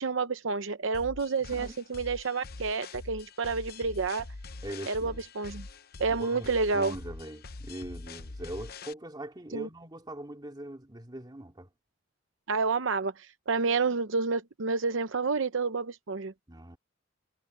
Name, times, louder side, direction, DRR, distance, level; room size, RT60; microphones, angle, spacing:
voice 1, 0.0-4.3 4.9-5.6 6.0-6.9 9.5-9.7 12.5-16.3, right 4 dB, 70° right, 0.8 m, -29 dB
sound 1, 0.9-8.9, left 3 dB, 55° left, 0.9 m, -44 dB
voice 2, 1.5-1.8 4.6-5.2 6.1-11.7 16.5-16.8, right 1 dB, 20° right, 2.4 m, -41 dB
head